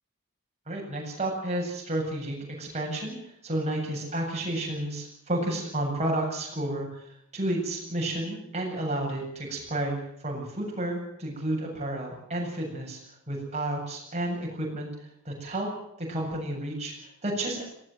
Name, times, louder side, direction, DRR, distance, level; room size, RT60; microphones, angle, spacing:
voice 1, 0.7-3.2 3.4-13.0 13.3-14.9 15.2-15.7 16.0-17.6, right 1 dB, 30° right, -1 dB, 8.0 m, -31 dB
19.0 x 17.5 x 9.3 m, 0.72 s
head